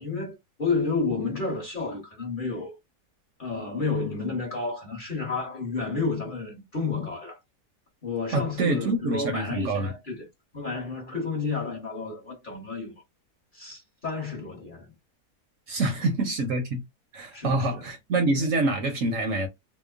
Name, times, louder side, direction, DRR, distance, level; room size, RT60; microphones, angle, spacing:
voice 1, 0.0-2.8 3.4-7.4 8.0-10.2 10.5-12.9 13.5-14.9 15.8-15.9 17.3-17.8, left 4 dB, 35° left, 1.0 m, -31 dB
voice 2, 8.3-9.9 15.7-16.8 17.1-19.5, right 2 dB, 65° right, 0.9 m, -26 dB
2.9 x 2.1 x 2.3 m
omnidirectional pair, 1.7 m